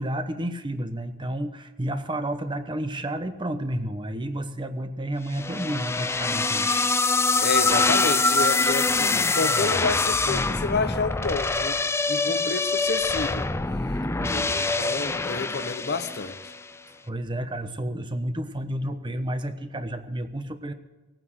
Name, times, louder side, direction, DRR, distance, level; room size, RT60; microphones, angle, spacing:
voice 1, 0.0-6.7 12.3-12.4 14.0-14.5 17.0-20.7, right 1 dB, 25° right, 1.0 m, -31 dB
sound 1, 5.3-16.6, left 3 dB, 15° left, 0.5 m, -24 dB
voice 2, 7.4-11.8 12.1-13.5 14.2-16.4, left 4 dB, 55° left, 0.8 m, -29 dB
17.5 x 9.2 x 7.9 m
head